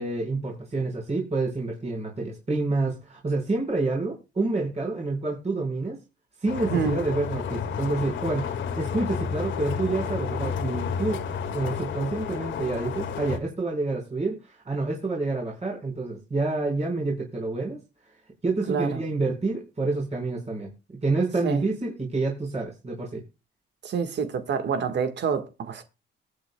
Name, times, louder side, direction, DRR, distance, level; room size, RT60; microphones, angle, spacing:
voice 1, 0.0-6.0 6.4-11.2 11.5-17.8 18.4-20.7 21.0-23.2, right 3 dB, 35° right, 4.7 m, -28 dB
sound 1, 6.5-13.4, left 6 dB, 70° left, 1.8 m, -31 dB
voice 2, 18.7-19.0 21.4-21.6 23.8-25.8, right 6 dB, 60° right, 1.5 m, -27 dB
22.5 x 8.8 x 2.2 m
cardioid pair, 90°, 20 cm